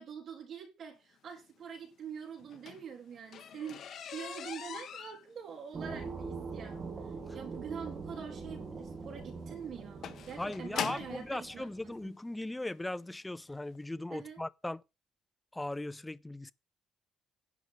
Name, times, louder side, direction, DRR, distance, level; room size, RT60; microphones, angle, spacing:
voice 1, 0.0-6.9 7.3-12.1 14.1-14.4, right 7 dB, 50° right, 3.9 m, -45 dB
sound 1, 2.4-11.3 12.2-12.3 12.8-13.0 13.3-13.4 13.7-13.8, left 9 dB, 55° left, 1.4 m, -43 dB
sound 2, 5.7-12.1, right 4 dB, 30° right, 2.4 m, -43 dB
voice 2, 10.4-14.8 15.5-16.5, left 1 dB, 10° left, 0.5 m, -38 dB
10.5 x 5.2 x 8.0 m
cardioid pair, 150°, 0 cm